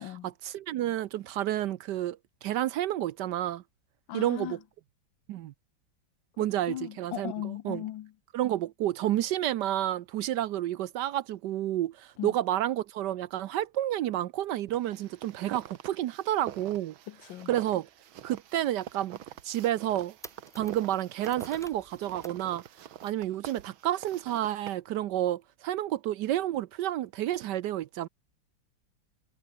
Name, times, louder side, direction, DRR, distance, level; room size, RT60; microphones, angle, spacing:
voice 1, 0.4-3.6 4.1-4.6 5.3-5.5 6.4-7.8 8.3-16.9 17.5-17.9 18.2-19.2 19.4-20.2 20.5-22.6 23.0-28.1, right 13 dB, 70° right, 1.1 m, -30 dB
voice 2, 4.1-4.6 6.7-8.1 12.2-12.3 17.1-17.5, left 13 dB, 80° left, 1.5 m, -37 dB
sound 1, 14.7-24.7, right 11 dB, 90° right, 1.9 m, -45 dB
sound 2, 18.1-18.2 18.7-18.8 19.3-19.4 19.7-22.4 22.7-23.1, equal, ahead, 1.0 m, -52 dB
omnidirectional pair, 2.1 m